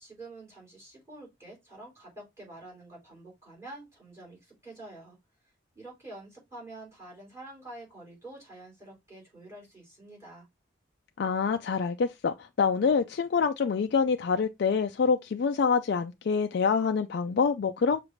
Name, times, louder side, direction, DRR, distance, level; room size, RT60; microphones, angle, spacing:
voice 1, 0.0-5.2 5.7-10.5, right 2 dB, 15° right, 3.3 m, -47 dB
voice 2, 11.2-18.0, left 5 dB, 55° left, 0.3 m, -26 dB
6.4 x 2.4 x 3.1 m
head